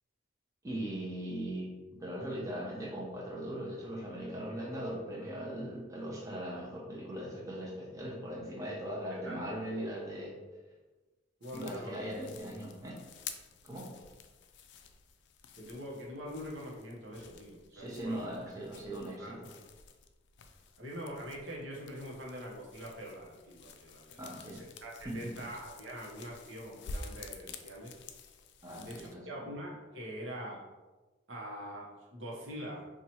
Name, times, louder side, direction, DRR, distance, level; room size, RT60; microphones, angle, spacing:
voice 1, 0.6-10.4 11.5-13.0 13.6-13.9 17.7-19.5 24.2-24.6 25.0-25.5 28.6-29.3, right 1 dB, 20° right, -4 dB, 0.7 m, -39 dB
voice 2, 9.1-9.4 11.4-12.0 15.5-18.3 19.2-19.4 20.8-28.0 28.7-30.6 31.3-32.8, equal, 75° right, -3 dB, 0.9 m, -44 dB
sound 1, 11.4-29.2, left 4 dB, 65° left, 0.3 m, -51 dB
2.9 x 2.4 x 4.2 m, 1.2 s
head